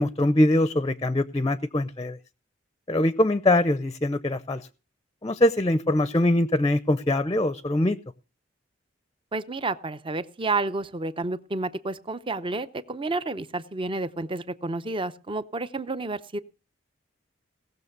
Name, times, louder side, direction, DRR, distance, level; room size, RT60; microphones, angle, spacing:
voice 1, 0.0-2.2 2.9-4.7 5.2-8.0, left 1 dB, 20° left, 14 dB, 0.6 m, -23 dB
voice 2, 9.3-16.4, right 3 dB, 30° right, 14 dB, 0.7 m, -30 dB
18.0 x 6.6 x 6.6 m, 0.35 s
head